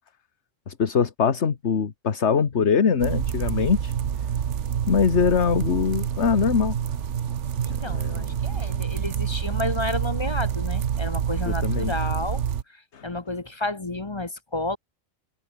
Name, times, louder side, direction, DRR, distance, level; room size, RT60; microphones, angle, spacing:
voice 1, 0.7-3.9 4.9-6.8 7.8-8.6 11.6-11.9 12.9-13.0, left 6 dB, 55° left, 1.7 m, -23 dB
sound 1, 3.0-12.6, right 8 dB, 60° right, 1.3 m, -27 dB
voice 2, 7.6-12.4 12.7-14.8, left 2 dB, 25° left, 0.9 m, -31 dB
open air
omnidirectional pair, 1.4 m